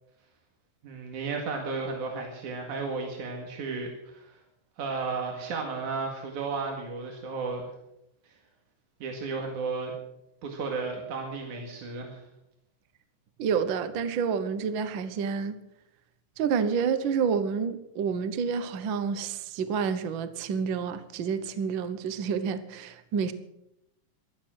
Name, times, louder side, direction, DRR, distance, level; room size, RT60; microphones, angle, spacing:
voice 1, 0.8-4.3 4.8-7.7 9.0-10.0 10.4-12.2, right 4 dB, 85° right, 3.5 m, -33 dB
voice 2, 13.4-15.6 16.4-23.3, right 6 dB, 60° right, 1.3 m, -29 dB
16.5 x 12.0 x 6.2 m
omnidirectional pair, 3.4 m